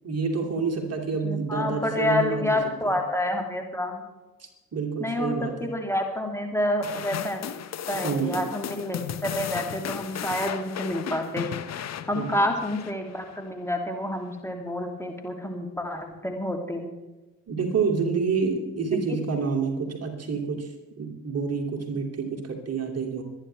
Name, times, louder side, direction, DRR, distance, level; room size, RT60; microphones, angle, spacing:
voice 1, 0.0-3.0 4.4-5.7 7.9-8.5 12.1-12.3 17.5-23.2, right 5 dB, 35° right, 2 dB, 2.7 m, -28 dB
voice 2, 1.2-4.1 5.0-7.4 7.9-16.9 18.9-19.2, left 1 dB, 5° left, 3 dB, 2.7 m, -29 dB
sound 1, 6.8-13.4, left 9 dB, 40° left, 1.0 m, -35 dB
24.5 x 9.9 x 3.4 m, 1.1 s
figure-of-eight pair, 50°, 41 cm